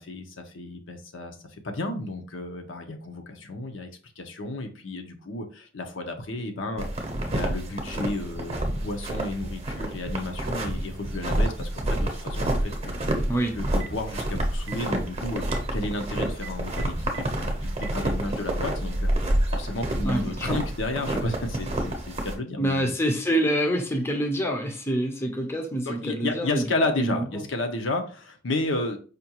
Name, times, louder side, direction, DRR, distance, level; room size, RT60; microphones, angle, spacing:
voice 1, 0.5-1.3 1.6-3.2 3.5-3.9 4.2-5.4 5.7-6.9 7.3-12.0 12.4-12.5 12.8-12.9 13.6-15.4 15.7-19.1 19.5-21.9 22.2-22.9 25.9-28.0 28.4-29.0, left 2 dB, 75° left, 5 dB, 0.7 m, -31 dB
sound 1, 6.8-22.3, right 1 dB, 30° right, 0.7 m, -28 dB
Telephone, 13.6-14.0 14.6-14.8 15.4-15.6 16.3-17.2 17.7-17.9, right 9 dB, 80° right, 0.4 m, -40 dB
voice 2, 20.0-20.6 22.6-26.6 27.0-27.4, right 1 dB, 15° left, 2 dB, 0.5 m, -26 dB
5.0 x 2.3 x 2.9 m, 0.38 s
head